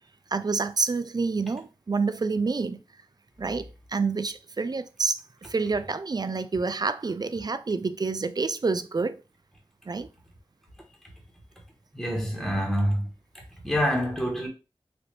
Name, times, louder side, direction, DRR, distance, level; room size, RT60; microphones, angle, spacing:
voice 1, 0.3-2.8 3.4-9.2 9.9-10.1, right 4 dB, 45° right, 0.4 m, -28 dB
voice 2, 11.9-13.1 13.6-14.5, equal, 5° left, 1.3 m, -26 dB
4.2 x 2.7 x 3.3 m
wide cardioid pair, 55°, 10 cm